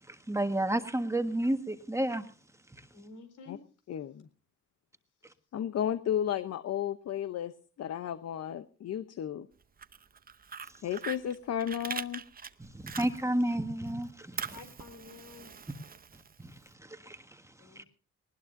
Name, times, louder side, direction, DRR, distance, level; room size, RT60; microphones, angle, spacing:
voice 1, 0.0-2.3 2.7-2.9 5.2-5.3 12.6-14.6 16.1-17.8, right 1 dB, 10° right, 1.5 m, -32 dB
voice 2, 2.9-3.6 14.5-15.5 17.6-17.9, left 4 dB, 80° left, 4.2 m, -49 dB
voice 3, 3.9-4.3 5.5-9.5 10.8-12.2, left 10 dB, 55° left, 0.8 m, -33 dB
Fire, 9.6-13.6 13.9-16.7, right 6 dB, 30° right, 0.8 m, -42 dB
19.5 x 19.5 x 2.6 m
cardioid pair, 90°, 30 cm